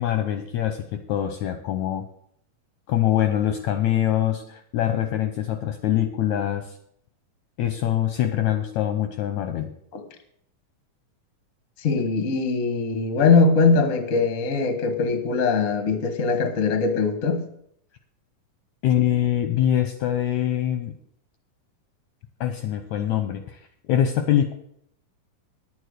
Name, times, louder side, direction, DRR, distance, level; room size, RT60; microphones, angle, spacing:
voice 1, 0.0-2.1 2.9-6.8 7.6-9.7 18.8-20.9 22.4-24.5, left 11 dB, 75° left, 7 dB, 1.7 m, -24 dB
voice 2, 11.8-17.4, left 4 dB, 50° left, 7 dB, 0.9 m, -21 dB
10.5 x 9.5 x 6.5 m, 0.70 s
omnidirectional pair, 4.1 m